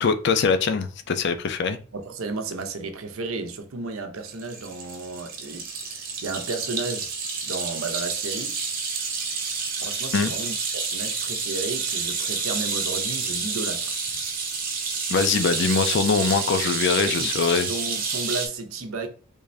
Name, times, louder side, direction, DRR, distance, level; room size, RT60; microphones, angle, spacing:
voice 1, 0.0-1.8 10.1-10.3 15.1-17.7, left 5 dB, 55° left, 0.5 m, -22 dB
voice 2, 1.9-7.1 7.4-8.6 9.8-13.9 17.0-17.3 17.7-19.1, right 3 dB, 85° right, 0.7 m, -33 dB
sound 1, 4.3-18.5, right 5 dB, 45° right, 0.8 m, -29 dB
3.5 x 2.6 x 3.2 m
head